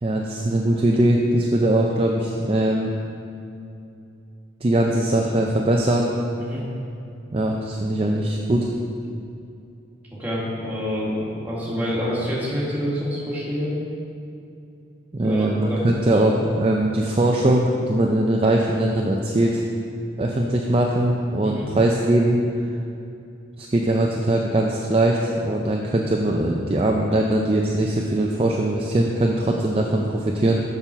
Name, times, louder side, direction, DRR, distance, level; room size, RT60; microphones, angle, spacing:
voice 1, 0.0-2.9 4.6-6.1 7.3-8.7 15.1-19.6 20.2-22.4 23.6-30.6, right 1 dB, 30° right, 0 dB, 0.4 m, -21 dB
voice 2, 10.2-13.7 15.2-16.0 21.4-21.7, equal, 10° right, -7 dB, 1.6 m, -27 dB
7.1 x 5.5 x 5.6 m, 2.6 s
head